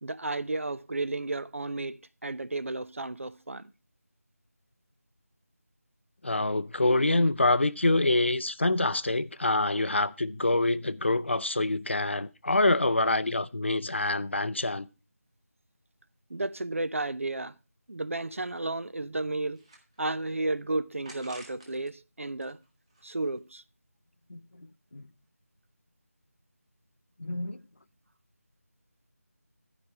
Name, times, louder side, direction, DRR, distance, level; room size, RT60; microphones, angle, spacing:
voice 1, 0.0-3.6 16.3-17.6 17.9-19.6 20.0-22.6 23.0-23.6, right 2 dB, 55° right, 0.6 m, -33 dB
voice 2, 6.2-14.9 24.3-24.4 24.9-25.0 27.2-27.6, left 2 dB, 45° left, 0.5 m, -26 dB
sound 1, 19.5-20.3 21.0-21.9 22.3-23.5, right 2 dB, 20° right, 1.7 m, -52 dB
12.5 x 5.1 x 5.7 m
figure-of-eight pair, 175°, 8 cm